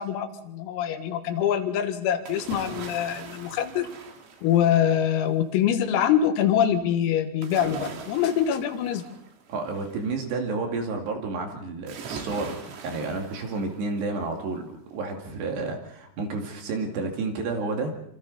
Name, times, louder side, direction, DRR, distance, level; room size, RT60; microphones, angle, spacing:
voice 1, 0.0-3.9 4.4-9.0, left 9 dB, 90° left, 7 dB, 4.2 m, -24 dB
sound 1, 2.3-5.1 7.4-10.0 11.9-14.2 14.6-14.7, right 6 dB, 90° right, 5.5 m, -41 dB
voice 2, 9.5-17.9, right 3 dB, 60° right, 3 dB, 4.1 m, -31 dB
27.0 x 26.0 x 4.1 m, 0.73 s
omnidirectional pair, 5.9 m